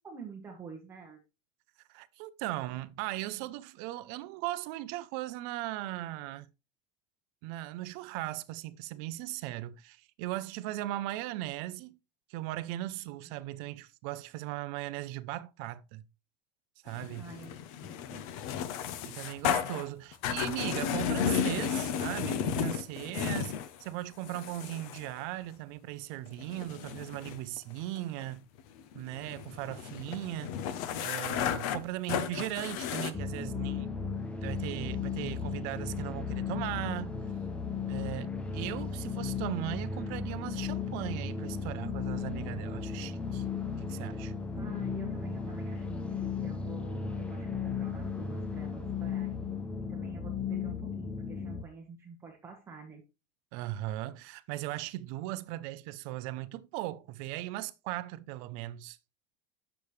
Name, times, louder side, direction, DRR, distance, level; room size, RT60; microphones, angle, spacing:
voice 1, 0.0-1.2 17.2-18.2 44.6-49.4 49.8-53.0, right 5 dB, 15° right, 1.0 m, -48 dB
voice 2, 1.9-6.5 7.4-12.0 12.3-16.1 16.8-17.3 19.0-23.5 23.8-28.5 28.9-34.0 34.4-37.2 37.9-43.4 43.8-44.3 53.5-59.0, right 15 dB, 45° right, 0.6 m, -38 dB
sound 1, 16.9-23.7 24.2-25.2 26.3-33.1, left 8 dB, 55° left, 0.8 m, -34 dB
sound 2, 33.1-51.6, left 5 dB, 5° left, 0.4 m, -35 dB
8.4 x 7.0 x 3.2 m
cardioid pair, 175°, 21 cm